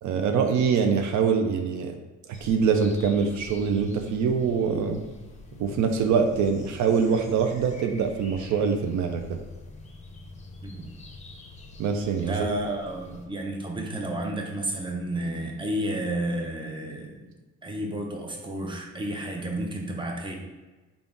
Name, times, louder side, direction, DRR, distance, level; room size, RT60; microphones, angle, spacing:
voice 1, 0.0-2.0 2.4-5.0 5.6-9.2 11.8-12.3, right 6 dB, 70° right, 5 dB, 0.5 m, -24 dB
sound 1, 2.3-13.3, left 2 dB, 25° left, 0.7 m, -45 dB
voice 2, 12.2-17.2 17.6-20.4, right 1 dB, 15° right, 0 dB, 0.7 m, -31 dB
3.7 x 2.4 x 3.6 m, 1.2 s
cardioid pair, 90°, 30 cm